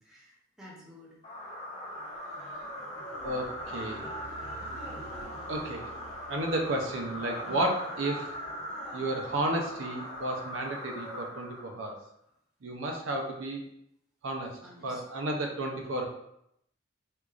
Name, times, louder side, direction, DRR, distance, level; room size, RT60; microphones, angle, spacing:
voice 1, 0.0-1.1 6.2-6.3 7.4-7.8 14.6-15.0, left 1 dB, 5° right, -6 dB, 0.9 m, -51 dB
sound 1, 1.2-12.0, equal, 35° left, 0.8 m, -40 dB
sound 2, 3.1-7.7, right 4 dB, 85° left, 0.7 m, -52 dB
voice 2, 3.2-4.1 5.5-5.9 6.3-8.3 8.9-11.9 12.6-13.6 14.2-16.0, right 1 dB, 70° right, 1 dB, 0.6 m, -32 dB
4.5 x 2.4 x 2.4 m, 0.76 s
head